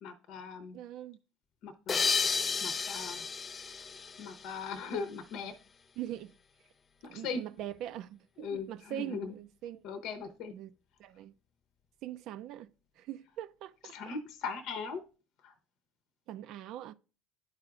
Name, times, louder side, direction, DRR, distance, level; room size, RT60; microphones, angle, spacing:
voice 1, 0.0-0.8 1.6-2.3 2.6-3.3 4.2-5.5 7.0-7.4 8.4-9.3 9.8-10.5 13.8-15.0 15.4-15.5, left 5 dB, 65° left, 0.8 m, -39 dB
voice 2, 0.7-1.2 6.0-6.3 7.1-9.8 10.5-10.7 11.0-11.3 12.0-12.7 13.0-14.2 16.3-16.9, right 12 dB, 60° right, 0.4 m, -42 dB
sound 1, 1.9-5.0, left 5 dB, 35° left, 0.3 m, -33 dB
11.0 x 4.7 x 2.4 m
hypercardioid pair, 70°, 0 cm